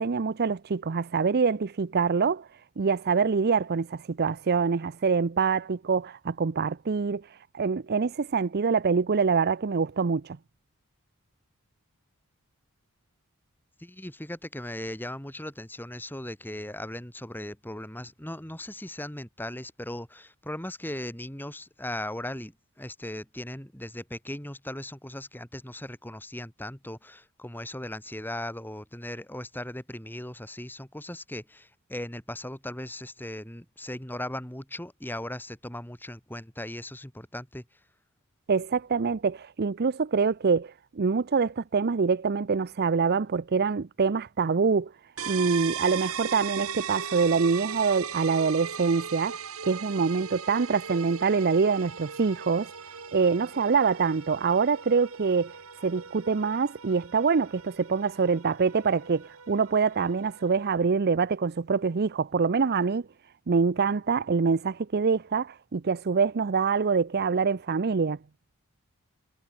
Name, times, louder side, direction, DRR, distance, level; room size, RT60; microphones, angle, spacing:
voice 1, 0.0-2.5 2.8-10.4 38.5-44.9 45.3-52.7 53.1-55.6 55.8-63.0 63.5-68.2, right 5 dB, 45° right, 0.5 m, -25 dB
voice 2, 13.8-37.6, left 1 dB, 10° left, 2.7 m, -38 dB
sound 1, 45.2-60.7, right 7 dB, 70° right, 2.6 m, -39 dB
head